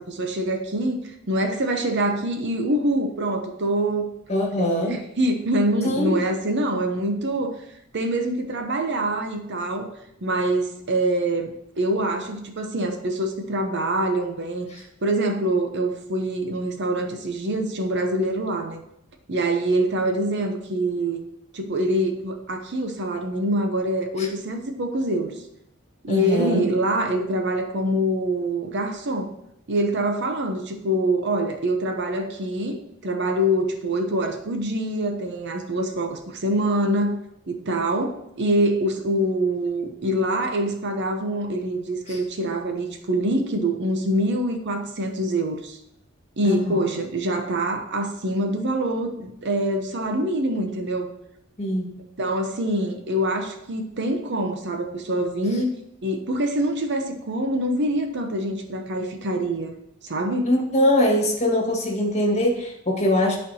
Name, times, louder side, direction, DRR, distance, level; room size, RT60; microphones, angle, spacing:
voice 1, 0.0-4.1 4.6-7.6 7.9-9.9 10.2-18.8 19.3-21.2 21.5-25.4 26.0-29.3 29.7-37.2 37.5-45.8 46.4-51.1 52.2-55.7 56.0-59.8 60.0-60.5, right 1 dB, 55° right, 5 dB, 0.8 m, -25 dB
voice 2, 4.3-5.0 5.8-6.2 24.2-24.3 26.1-26.6 42.1-42.2 46.4-46.8 51.6-51.9 60.4-63.4, left 1 dB, 30° left, 0 dB, 1.6 m, -22 dB
11.5 x 4.4 x 2.8 m, 0.79 s
head